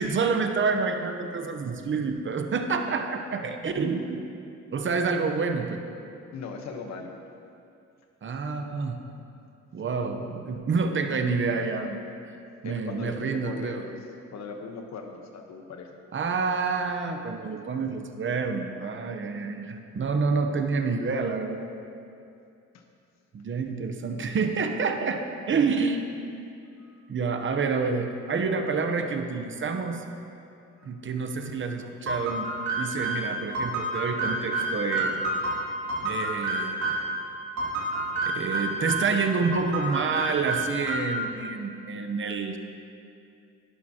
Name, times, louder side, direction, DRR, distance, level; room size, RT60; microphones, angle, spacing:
voice 1, 0.0-4.3 4.7-5.8 8.2-9.0 9.7-12.0 12.6-13.8 16.1-21.7 23.3-26.1 27.1-30.0 30.8-32.5 32.8-35.2 36.0-36.7 38.3-42.6, right 4 dB, 40° right, 5 dB, 0.9 m, -28 dB
voice 2, 6.3-7.1 8.4-8.5 12.6-14.0 14.3-15.9 22.7-22.8 26.8-27.0 30.8-30.9, left 4 dB, 60° left, 4 dB, 1.2 m, -39 dB
sound 1, 32.1-37.1 37.6-39.2 39.5-41.2, right 2 dB, 65° right, 2.6 m, -29 dB
11.0 x 11.0 x 2.9 m, 2.5 s
cardioid pair, 90°, 30 cm